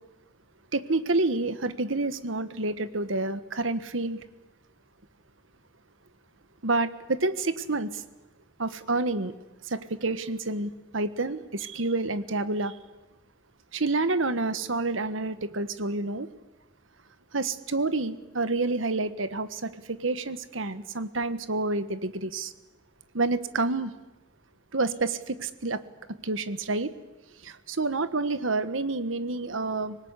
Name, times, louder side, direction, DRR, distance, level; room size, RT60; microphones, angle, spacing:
voice 1, 0.7-4.2 6.6-8.0 8.6-9.3 9.6-12.8 13.7-16.3 17.3-22.5 23.1-23.9 24.7-25.8 26.2-26.9 27.4-30.0, right 3 dB, 85° right, 12 dB, 1.5 m, -28 dB
25.0 x 20.0 x 9.8 m, 1.0 s
head